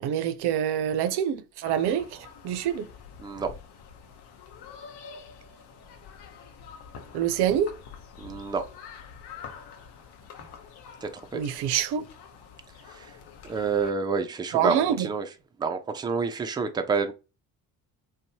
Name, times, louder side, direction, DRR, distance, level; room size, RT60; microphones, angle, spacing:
voice 1, 0.0-2.8 7.1-7.7 11.3-12.0 14.5-15.1, right 9 dB, 55° right, 0.6 m, -26 dB
sound 1, 1.6-13.9, left 6 dB, 55° left, 0.8 m, -47 dB
voice 2, 3.2-3.5 8.2-8.6 11.0-11.4 12.9-13.1 13.4-15.3 15.6-17.1, right 5 dB, 10° right, 0.3 m, -28 dB
2.6 x 2.3 x 2.8 m
hypercardioid pair, 55°, 49 cm